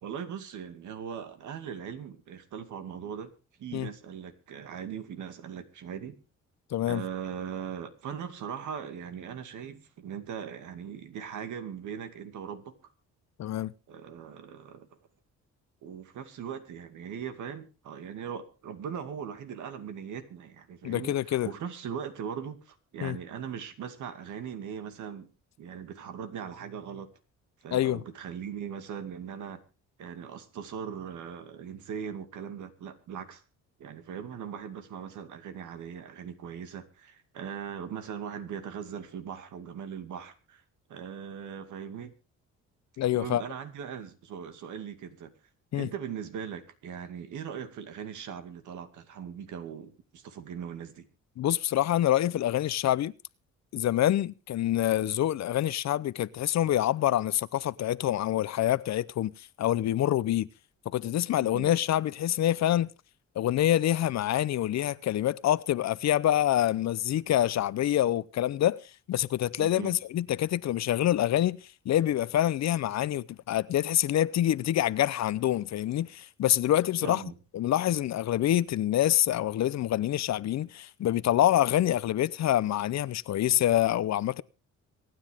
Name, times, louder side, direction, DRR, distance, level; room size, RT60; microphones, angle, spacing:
voice 1, 0.0-3.3 3.6-6.2 6.9-12.7 13.9-14.9 15.8-25.3 25.6-27.1 27.6-29.6 30.0-33.4 33.8-40.6 40.9-42.1 43.1-45.3 45.7-51.1 61.4-61.7 69.6-70.0 77.0-77.4, right 8 dB, 75° right, 2.3 m, -39 dB
voice 2, 6.7-7.0 13.4-13.7 20.8-21.5 23.0-23.2 27.7-28.0 43.0-43.4 45.7-45.9 51.4-53.1 53.7-59.3 59.6-60.5 60.9-62.9 63.4-68.8 69.1-71.6 71.9-77.2 77.5-84.4, left 12 dB, 60° left, 0.7 m, -26 dB
25.5 x 9.7 x 3.6 m
cardioid pair, 90°, 30 cm